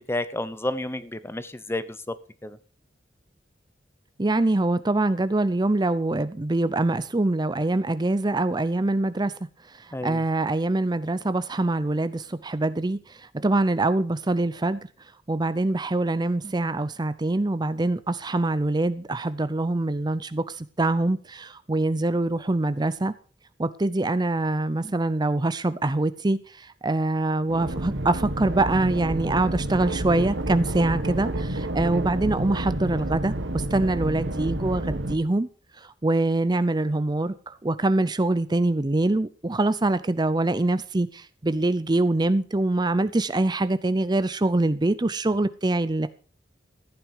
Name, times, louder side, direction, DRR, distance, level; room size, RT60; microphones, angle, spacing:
voice 1, 0.0-2.1 2.4-2.6 9.9-10.2, left 1 dB, 15° left, 14 dB, 0.9 m, -31 dB
voice 2, 4.2-9.3 9.7-14.8 15.3-23.1 23.6-35.5 35.8-46.1, right 2 dB, 25° right, 14 dB, 0.6 m, -24 dB
sound 1, 27.5-35.2, right 1 dB, 75° right, 1.9 m, -29 dB
15.0 x 9.3 x 4.8 m, 0.40 s
head